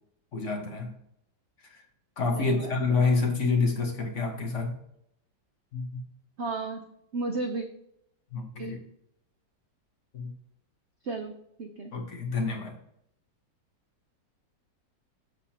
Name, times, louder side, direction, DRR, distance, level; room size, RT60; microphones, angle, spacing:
voice 1, 0.3-0.9 1.6-1.8 2.2-4.8 5.7-6.0 8.3-8.8 10.1-10.3 11.9-12.8, left 4 dB, 45° left, 2 dB, 1.4 m, -28 dB
voice 2, 2.3-3.1 6.4-6.8 7.1-7.7 8.6-8.8 11.0-11.3 11.6-11.9, right 3 dB, 65° right, 5 dB, 0.7 m, -33 dB
7.5 x 7.1 x 2.8 m, 0.76 s
omnidirectional pair, 2.0 m